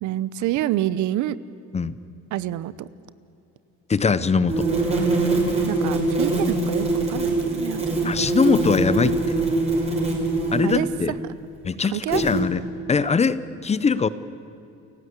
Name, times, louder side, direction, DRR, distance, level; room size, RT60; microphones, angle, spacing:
voice 1, 0.0-1.4 2.3-2.9 5.7-8.1 10.6-10.9 11.9-12.2, right 14 dB, 80° right, 17 dB, 0.8 m, -27 dB
voice 2, 3.9-4.7 8.0-9.2 10.5-11.2 11.6-12.6 12.9-14.1, left 5 dB, 20° left, 16 dB, 0.7 m, -21 dB
sound 1, 4.5-10.9 12.1-12.4, right 2 dB, 20° right, 5.3 m, -23 dB
29.0 x 16.5 x 8.3 m, 2.8 s
cardioid pair, 135°, 30 cm